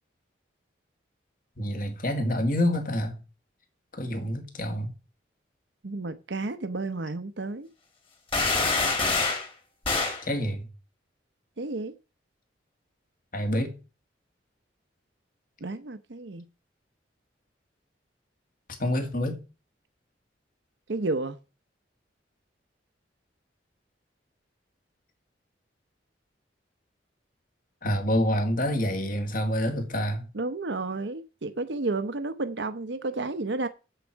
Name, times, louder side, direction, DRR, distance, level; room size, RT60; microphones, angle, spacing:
voice 1, 1.6-3.2 3.9-4.9 10.2-10.7 13.3-13.7 18.8-19.4 27.8-30.3, equal, 45° left, 2.1 m, -27 dB
voice 2, 5.8-7.7 11.6-12.0 15.6-16.4 20.9-21.4 30.3-33.7, right 2 dB, 70° right, 0.8 m, -31 dB
sound 1, 8.3-9.5 9.8-10.2, left 3 dB, 30° left, 2.5 m, -25 dB
8.0 x 7.6 x 7.2 m
head